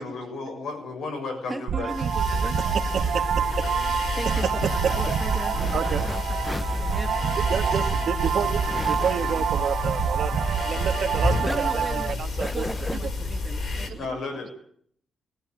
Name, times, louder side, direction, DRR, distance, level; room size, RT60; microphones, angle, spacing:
voice 1, 0.0-2.0 14.0-14.5, left 3 dB, 85° left, 4 dB, 6.6 m, -33 dB
voice 2, 1.5-2.7 3.1-3.3 4.2-7.3 11.5-14.3, right 1 dB, 5° right, 5 dB, 1.9 m, -37 dB
sound 1, 1.7-12.1, right 8 dB, 75° right, 1.0 m, -27 dB
sound 2, 1.9-13.9, left 3 dB, 50° left, 4.7 m, -30 dB
sound 3, 2.4-11.1 11.4-13.0, left 1 dB, 10° left, 0.9 m, -38 dB
voice 3, 2.6-3.7 4.3-4.7 5.7-6.0 7.5-11.7 12.2-12.6, right 7 dB, 60° right, 6 dB, 1.8 m, -30 dB
21.0 x 16.0 x 9.1 m, 0.63 s
wide cardioid pair, 160°, 0 cm